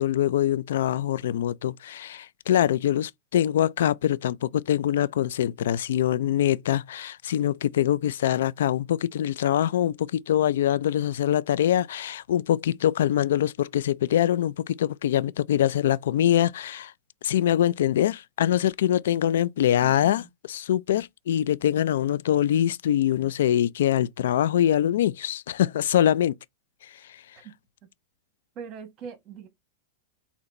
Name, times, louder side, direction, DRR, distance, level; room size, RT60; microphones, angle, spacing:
voice 1, 0.0-16.9 17.2-26.3 26.8-26.9, left 11 dB, 80° left, 0.3 m, -24 dB
voice 2, 19.8-20.3 28.5-29.5, right 7 dB, 35° right, 1.5 m, -41 dB
4.1 x 2.9 x 4.2 m
supercardioid pair, 140°, 0 cm